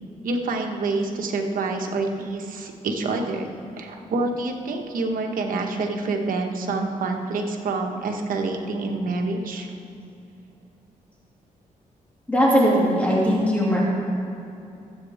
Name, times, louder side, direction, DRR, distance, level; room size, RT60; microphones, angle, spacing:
voice 1, 0.2-3.5 3.8-9.7, right 3 dB, 80° right, 2 dB, 1.4 m, -27 dB
voice 2, 12.3-13.9, equal, 10° left, -6 dB, 2.8 m, -19 dB
20.0 x 8.3 x 3.6 m, 2.7 s
cardioid pair, 90°, 14 cm